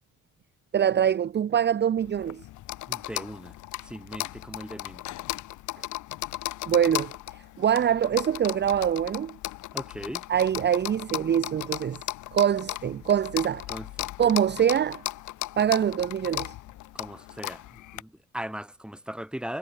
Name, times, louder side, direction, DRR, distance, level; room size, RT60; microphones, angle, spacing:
voice 1, 0.7-2.5 6.7-9.4 10.3-12.0 12.3-13.7 14.2-15.0 15.6-16.5, right 9 dB, 35° right, 0.6 m, -24 dB
sound 1, 2.0-18.0, left 16 dB, 75° left, 0.7 m, -36 dB
voice 2, 2.9-3.6 3.8-5.0 9.7-10.2 13.7-14.1 16.9-19.6, equal, 5° right, 3.0 m, -38 dB
cardioid pair, 90°, 30 cm